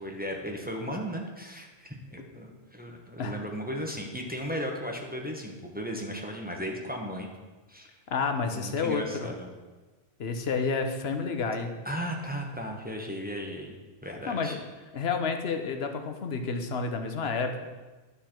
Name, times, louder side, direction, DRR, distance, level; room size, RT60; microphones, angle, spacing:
voice 1, 0.0-7.3 7.7-7.9 8.5-9.5 11.8-13.8 14.0-14.6, equal, 10° right, 0 dB, 1.0 m, -36 dB
voice 2, 8.1-9.3 10.2-11.7 14.3-14.6 14.9-17.6, left 5 dB, 60° left, 6 dB, 1.0 m, -30 dB
10.5 x 6.8 x 4.4 m, 1.2 s
omnidirectional pair, 1.2 m